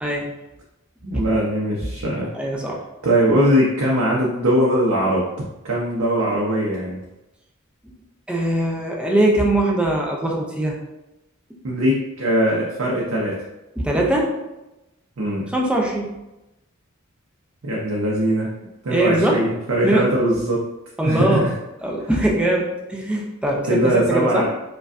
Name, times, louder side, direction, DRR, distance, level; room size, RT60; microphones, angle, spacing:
voice 1, 0.0-0.3 1.1-1.2 2.3-2.8 8.3-10.8 13.8-14.3 15.5-16.1 18.9-19.4 19.8-20.1 21.0-21.4 21.8-24.4, right 1 dB, 5° right, -2 dB, 0.4 m, -21 dB
voice 2, 1.0-2.3 3.0-5.3 5.6-7.0 11.6-13.4 15.2-15.5 17.6-18.5 18.8-20.6 21.0-21.5 23.7-24.4, right 1 dB, 75° right, -4 dB, 0.6 m, -20 dB
4.9 x 2.3 x 2.4 m, 0.97 s
head